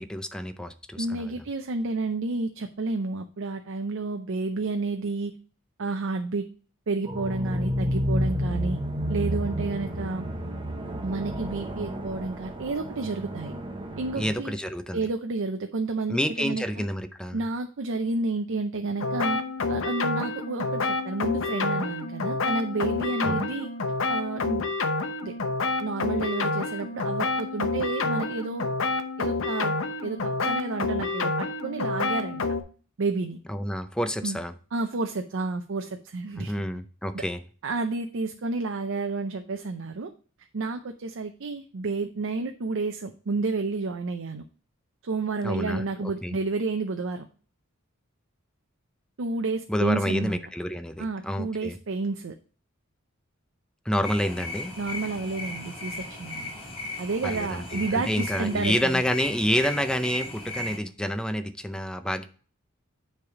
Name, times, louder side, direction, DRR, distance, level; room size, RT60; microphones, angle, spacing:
voice 1, 0.0-1.3 14.1-15.1 16.1-17.4 23.2-23.4 33.5-34.5 36.4-37.4 45.4-45.8 46.2-46.3 49.7-51.8 53.9-54.7 57.2-62.2, equal, 5° left, 8 dB, 0.5 m, -28 dB
voice 2, 1.0-5.3 5.8-6.5 6.9-8.8 9.1-10.2 11.0-13.5 14.0-14.5 14.9-16.9 17.3-19.4 19.7-23.7 24.1-24.6 25.2-25.3 25.8-28.7 29.2-29.8 30.0-32.4 33.0-33.4 34.2-34.4 34.7-36.5 37.1-37.2 37.6-40.1 40.5-44.4 45.0-47.3 49.2-50.4 51.0-52.3 54.8-56.5 57.0-59.0, right 3 dB, 65° right, 6 dB, 0.6 m, -30 dB
sound 1, 7.1-14.3, equal, 25° right, 0.8 m, -30 dB
sound 2, 19.0-32.6, left 3 dB, 65° left, 0.8 m, -28 dB
sound 3, 54.0-60.8, left 2 dB, 30° left, 3.2 m, -36 dB
9.6 x 3.4 x 4.8 m, 0.40 s
head